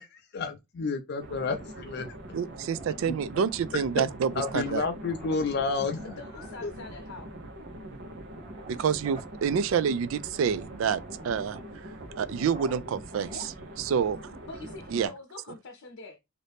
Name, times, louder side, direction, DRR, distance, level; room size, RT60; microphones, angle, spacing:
voice 1, 0.0-2.1 3.1-3.2 3.7-3.8 4.4-6.0 6.6-6.7, left 4 dB, 50° left, 0.4 m, -30 dB
sound 1, 1.2-15.1, right 1 dB, 55° right, 0.8 m, -43 dB
voice 2, 2.3-4.8 8.7-11.6 12.2-13.3 13.8-14.3 14.9-15.1, right 7 dB, 75° right, 0.3 m, -28 dB
sound 2, 2.4-14.4, right 2 dB, 25° right, 1.0 m, -53 dB
voice 3, 5.8-7.3 13.3-13.5 14.5-16.2, left 3 dB, 85° left, 0.7 m, -44 dB
2.7 x 2.6 x 3.4 m
head